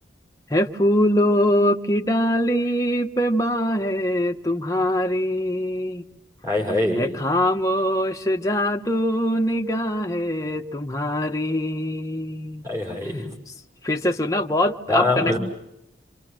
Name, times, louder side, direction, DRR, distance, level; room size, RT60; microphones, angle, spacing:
voice 1, 0.5-6.0 7.0-12.6 13.8-15.4, equal, 15° left, 3 dB, 1.2 m, -23 dB
voice 2, 6.4-7.1 12.6-13.3 14.9-15.4, left 2 dB, 15° right, -1 dB, 6.4 m, -23 dB
28.0 x 26.5 x 7.7 m, 0.84 s
head